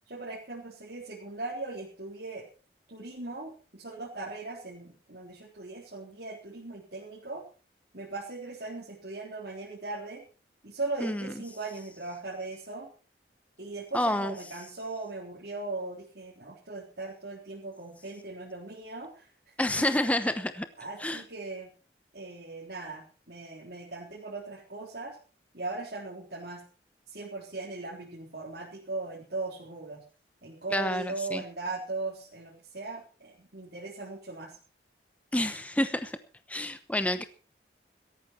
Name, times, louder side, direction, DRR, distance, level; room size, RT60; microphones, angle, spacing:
voice 1, 0.1-2.5 2.9-7.4 7.9-10.2 10.6-12.9 13.6-19.3 19.8-19.9 20.8-21.7 22.1-25.2 25.5-26.7 27.1-30.0 30.4-34.6, right 3 dB, 65° right, -4 dB, 3.6 m, -39 dB
voice 2, 11.0-11.3 13.9-14.4 19.6-20.7 21.0-21.2 30.7-31.4 35.3-36.2 36.5-37.2, left 1 dB, 10° left, 10 dB, 0.9 m, -29 dB
17.5 x 13.5 x 4.5 m, 0.37 s
head